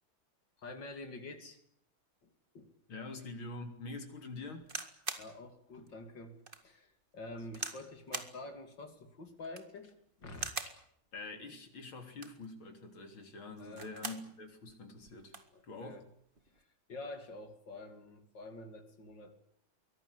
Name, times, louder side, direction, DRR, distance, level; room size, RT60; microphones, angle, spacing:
voice 1, 0.6-1.6 2.2-2.7 5.2-6.4 6.6-10.5 13.6-13.9 15.5-16.0 16.5-19.3, left 2 dB, 60° left, 7 dB, 3.6 m, -48 dB
voice 2, 2.9-4.7 11.1-15.3 15.6-16.0, left 3 dB, 75° left, 5 dB, 4.2 m, -45 dB
sound 1, 4.6-5.3 5.9-6.0 6.5-6.6 7.5-7.8 8.1-8.4 9.4-9.8 10.3-10.8 12.0-12.5 13.6-14.3 14.7-14.8 15.0-15.5 16.4-16.6, right 3 dB, 25° right, 2.0 m, -41 dB
23.5 x 18.0 x 10.0 m, 0.70 s
omnidirectional pair, 2.2 m